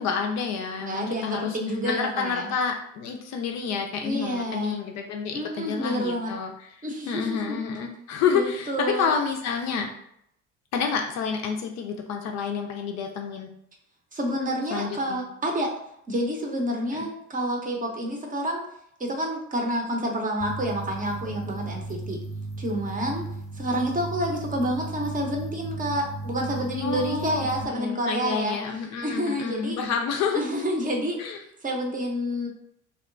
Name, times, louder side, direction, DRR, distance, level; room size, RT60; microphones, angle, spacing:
voice 1, 0.0-1.6 1.8-6.7 7.1-9.9 10.7-13.5 14.7-15.2 16.9-17.1 26.7-30.4 31.2-31.4, left 6 dB, 50° left, 3 dB, 0.5 m, -29 dB
voice 2, 0.8-2.5 4.0-4.8 5.3-6.3 6.8-7.6 8.3-9.1 14.1-15.7 16.1-18.7 19.0-22.2 22.6-23.3 23.5-28.6 29.0-29.8 30.3-31.2 31.6-32.5, equal, 20° right, 0 dB, 0.7 m, -28 dB
sound 1, 20.4-27.6, right 2 dB, 10° left, 0.9 m, -36 dB
2.8 x 2.1 x 2.5 m, 0.73 s
hypercardioid pair, 65°, 37 cm